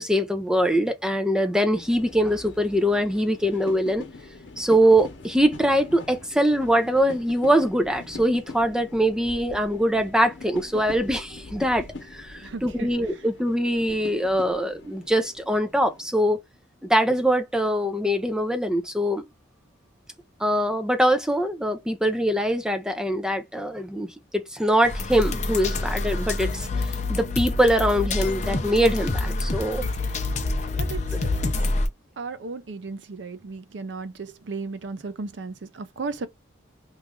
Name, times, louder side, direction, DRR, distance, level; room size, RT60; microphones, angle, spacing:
voice 1, 0.0-4.1 4.6-16.4 16.9-19.2 20.4-26.7 27.1-29.8, equal, 5° right, 0.5 m, -23 dB
sound 1, 1.7-16.1, left 2 dB, 70° left, 0.9 m, -43 dB
voice 2, 12.4-12.9 30.8-31.5 32.2-36.3, right 4 dB, 65° right, 0.5 m, -35 dB
sound 2, 24.8-31.9, left 2 dB, 40° left, 0.6 m, -27 dB
3.1 x 2.4 x 3.5 m
head